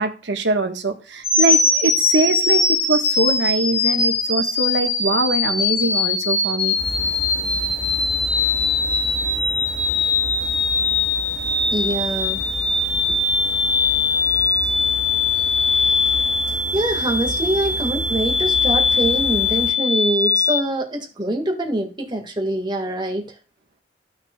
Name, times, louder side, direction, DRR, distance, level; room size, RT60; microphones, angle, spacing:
voice 1, 0.0-6.7 13.1-13.2, right 2 dB, 75° right, 1.3 m, -23 dB
sound 1, 1.2-20.6, left 3 dB, 35° left, 2.1 m, -21 dB
sound 2, 6.8-19.7, left 1 dB, 80° left, 4.3 m, -34 dB
voice 2, 11.7-12.4 16.7-23.3, right 1 dB, 25° right, 1.7 m, -24 dB
15.5 x 5.9 x 2.3 m
head